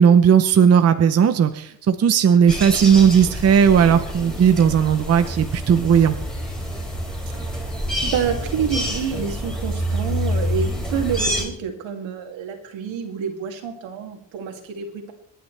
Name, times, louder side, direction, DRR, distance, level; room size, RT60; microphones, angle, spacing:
voice 1, 0.0-6.2, right 7 dB, 35° right, 9 dB, 0.7 m, -16 dB
sound 1, 2.5-11.5, equal, ahead, 3.4 m, -27 dB
voice 2, 8.0-15.1, right 7 dB, 80° right, 3 dB, 2.7 m, -28 dB
26.0 x 10.0 x 3.4 m, 0.68 s
cardioid pair, 155°, 45 cm